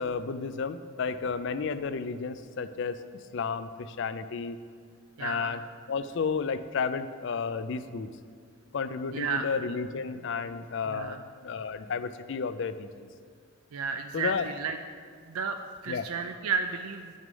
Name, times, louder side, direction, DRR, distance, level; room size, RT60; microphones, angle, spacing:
voice 1, 0.0-4.6 5.2-5.6 5.9-8.1 8.7-13.1 14.1-14.5 15.9-16.1, left 5 dB, 55° left, 13 dB, 0.4 m, -32 dB
voice 2, 5.2-5.6 9.1-9.5 10.8-11.2 13.7-14.8 15.3-17.1, right 5 dB, 80° right, 6 dB, 0.4 m, -32 dB
9.5 x 6.3 x 5.3 m, 2.1 s
head